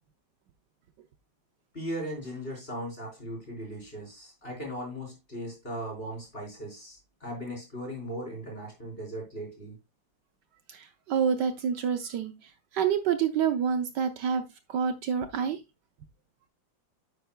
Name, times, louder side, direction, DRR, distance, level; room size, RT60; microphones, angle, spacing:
voice 1, 1.7-9.8, equal, 30° left, 4.2 m, -38 dB
voice 2, 10.7-12.3 12.7-15.6, right 7 dB, 70° right, 1.3 m, -28 dB
10.0 x 8.1 x 2.2 m
omnidirectional pair, 2.0 m